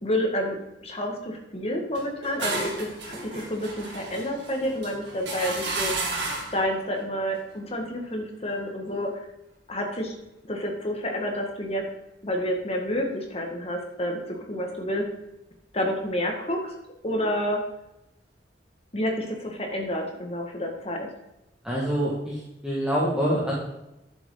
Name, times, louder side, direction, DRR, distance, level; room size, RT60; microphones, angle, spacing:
voice 1, 0.0-6.1 6.5-9.3 9.7-10.2 10.5-11.8 12.2-15.1 15.7-16.7 17.0-17.6 18.9-21.1, equal, 35° left, 2 dB, 1.8 m, -29 dB
sound 1, 1.9-6.6, right 3 dB, 75° right, 2.7 m, -32 dB
voice 2, 21.6-23.5, equal, 5° right, -7 dB, 1.9 m, -26 dB
11.5 x 7.0 x 3.9 m, 0.92 s
head